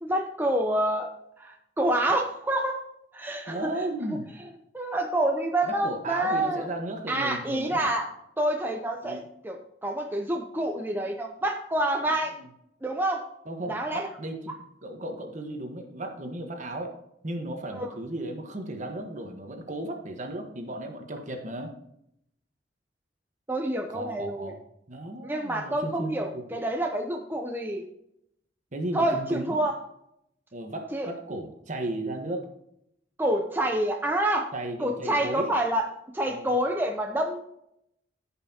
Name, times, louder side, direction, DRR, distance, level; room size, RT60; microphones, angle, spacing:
voice 1, 0.0-2.8 3.1-3.7 4.7-6.7 7.1-8.1 8.4-12.3 12.8-13.2 13.7-14.1 17.7-17.9 23.5-24.5 25.2-27.8 28.9-29.7 30.9-31.1 33.2-34.5 34.8-35.9 36.1-37.4, right 1 dB, 10° right, 2 dB, 0.7 m, -27 dB
voice 2, 3.5-4.3 5.6-7.9 9.0-9.3 12.1-12.5 13.4-17.0 17.2-21.7 23.9-24.6 24.9-26.5 28.7-29.6 30.5-32.5 34.5-35.5 36.2-36.5, right 1 dB, 45° right, 4 dB, 1.3 m, -35 dB
15.0 x 5.7 x 2.8 m, 0.78 s
head